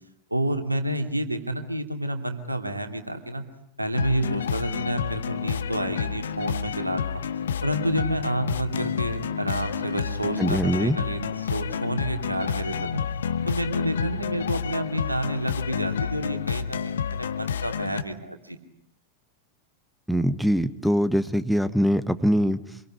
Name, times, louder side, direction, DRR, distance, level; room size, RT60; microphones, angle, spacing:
voice 1, 0.3-3.4 3.8-7.2 7.6-13.0 13.5-18.6, right 1 dB, 85° right, 7 dB, 2.6 m, -29 dB
sound 1, 3.9-18.0, left 7 dB, 65° left, 1.1 m, -29 dB
voice 2, 10.4-11.0 20.1-22.8, equal, ahead, 14 dB, 1.2 m, -23 dB
26.5 x 22.5 x 10.0 m, 0.72 s
figure-of-eight pair, 90°, 0 cm